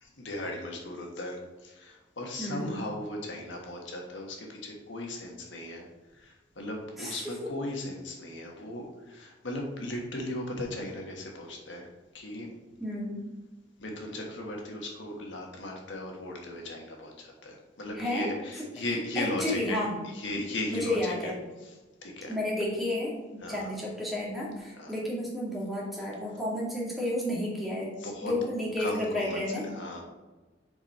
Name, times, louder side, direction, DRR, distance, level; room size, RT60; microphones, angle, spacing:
voice 1, 0.0-5.9 6.1-11.9 12.1-12.5 13.8-19.8 20.0-21.3 21.6-21.7 22.0-22.4 23.4-23.7 24.7-24.9 26.3-26.4 28.0-28.3 28.8-30.0, left 1 dB, 80° left, 1 dB, 1.5 m, -37 dB
voice 2, 2.4-2.7 7.0-7.2 12.8-13.2 18.0-18.3 18.8-18.9 19.2-19.9 20.7-21.4 22.3-27.9 28.2-29.6, left 1 dB, ahead, -5 dB, 2.1 m, -31 dB
7.0 x 5.1 x 4.2 m, 1.2 s
head